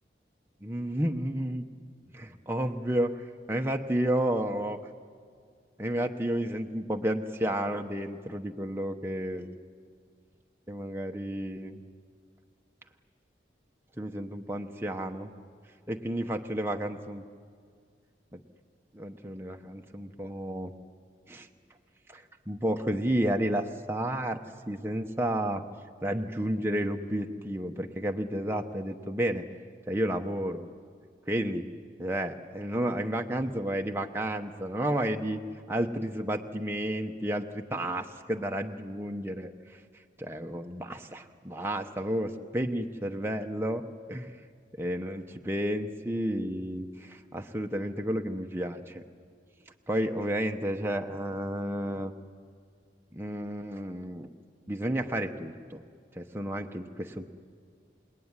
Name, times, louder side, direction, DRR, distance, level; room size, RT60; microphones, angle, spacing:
voice 1, 0.6-1.6 2.1-4.8 5.8-9.6 10.7-11.8 14.0-15.3 15.9-17.2 18.3-18.4 18.9-20.7 21.3-21.5 22.1-24.4 24.7-25.6 26.0-29.4 29.9-30.7 31.3-31.7 32.0-35.4 35.7-39.8 40.2-43.8 44.1-44.3 44.8-49.0 49.9-52.1 53.1-54.3 54.7-55.8 56.1-57.3, right 1 dB, 15° right, 3 dB, 0.9 m, -31 dB
28.5 x 19.5 x 9.8 m, 2.1 s
head